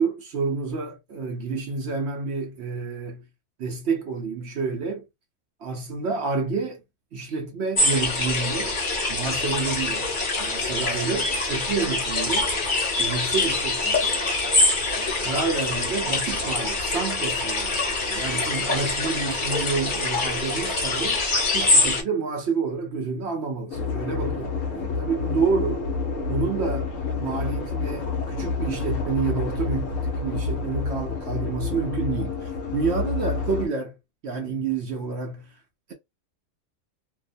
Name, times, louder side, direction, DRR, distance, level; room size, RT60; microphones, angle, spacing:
voice 1, 0.0-3.3 3.6-5.1 5.6-6.8 7.1-8.8 9.1-12.5 13.0-14.2 14.9-25.9 26.3-26.9 27.2-34.0 34.2-35.6, right 4 dB, 65° right, 0.7 m, -29 dB
sound 1, 7.8-22.0, left 2 dB, 40° left, 1.2 m, -24 dB
sound 2, 23.7-33.7, left 4 dB, 70° left, 1.0 m, -28 dB
2.7 x 2.0 x 2.5 m
omnidirectional pair, 1.5 m